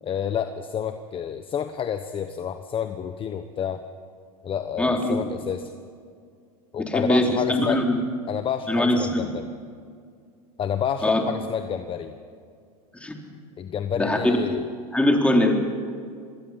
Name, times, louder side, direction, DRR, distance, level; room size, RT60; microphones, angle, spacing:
voice 1, 0.0-3.8 4.4-5.7 6.7-7.8 8.3-9.5 10.6-12.2 13.6-14.7, left 8 dB, 30° left, 8 dB, 1.1 m, -29 dB
voice 2, 4.8-5.2 6.9-8.0 8.7-9.3 11.0-11.2 13.0-13.2 14.0-14.2 14.9-15.8, left 1 dB, 5° left, 1 dB, 3.4 m, -22 dB
26.0 x 21.0 x 5.7 m, 2.2 s
hypercardioid pair, 115°, 19 cm